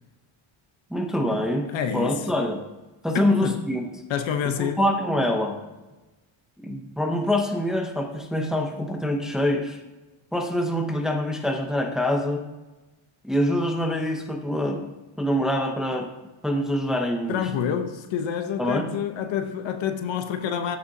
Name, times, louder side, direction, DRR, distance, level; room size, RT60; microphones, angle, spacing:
voice 1, 0.9-1.7 1.9-2.6 3.0-3.8 4.6-5.6 6.6-9.8 10.3-12.4 13.2-14.9 15.2-16.1 16.4-17.5 18.6-18.9, left 1 dB, ahead, 0.7 m, -25 dB
voice 2, 1.7-2.2 3.1-3.6 4.1-4.8 17.3-20.8, left 8 dB, 65° left, 1.0 m, -28 dB
14.5 x 6.7 x 2.8 m
cardioid pair, 150°, 49 cm